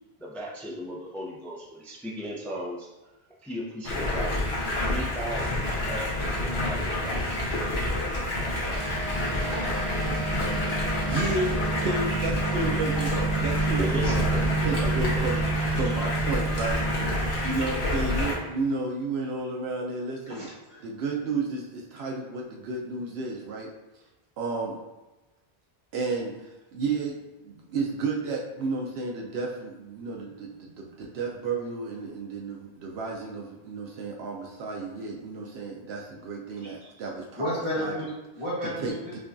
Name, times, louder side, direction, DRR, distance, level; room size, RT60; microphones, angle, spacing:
voice 1, 0.2-2.9 3.4-7.4 8.4-8.9 13.6-14.5 14.8-15.1, equal, ahead, -4 dB, 0.4 m, -37 dB
Stream, 3.8-18.3, left 1 dB, 80° left, 1.2 m, -28 dB
sound 1, 8.7-18.4, right 4 dB, 35° right, 0.7 m, -31 dB
voice 2, 11.1-14.2 14.6-15.4 15.7-16.8 17.4-20.5 20.8-23.7 24.4-24.8 25.9-27.2 27.4-37.5 37.8-37.9 38.8-39.2, right 3 dB, 85° right, -1 dB, 0.8 m, -32 dB
voice 3, 20.3-20.9 36.6-36.9 37.4-39.2, equal, 65° right, -8 dB, 1.7 m, -33 dB
5.8 x 2.3 x 2.5 m, 1.1 s
omnidirectional pair, 1.0 m